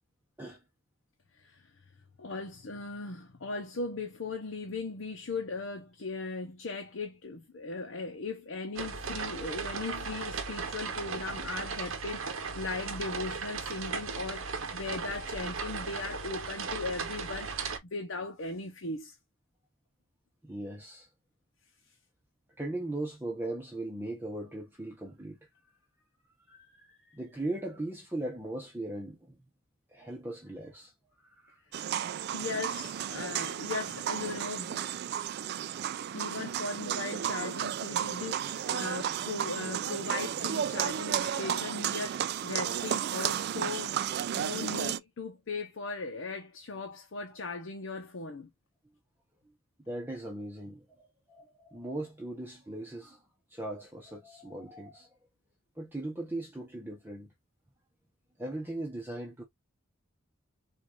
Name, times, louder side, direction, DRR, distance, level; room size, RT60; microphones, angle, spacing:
voice 1, 2.2-19.1 31.7-32.0 32.3-34.9 35.8-48.5, left 3 dB, 70° left, 0.8 m, -38 dB
sound 1, 8.7-17.8, right 5 dB, 80° right, 0.8 m, -37 dB
voice 2, 20.4-21.1 22.6-25.4 26.5-29.4 29.9-30.9 31.2-31.6 49.8-53.2 53.5-55.1 55.8-57.3 58.4-59.4, right 1 dB, 10° right, 0.9 m, -39 dB
sound 2, 31.7-45.0, right 10 dB, 55° right, 0.3 m, -33 dB
4.6 x 2.5 x 2.5 m
head